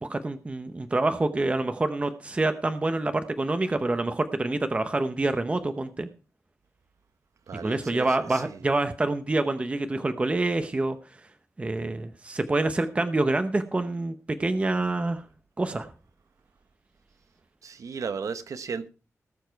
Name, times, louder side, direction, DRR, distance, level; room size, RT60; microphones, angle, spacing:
voice 1, 0.0-6.1 7.5-11.0 11.6-15.2 15.6-15.9, right 2 dB, 25° right, 0.8 m, -27 dB
voice 2, 7.5-8.6 17.6-18.9, right 5 dB, 85° right, 1.0 m, -35 dB
18.0 x 7.3 x 4.6 m
wide cardioid pair, 165°, 5 cm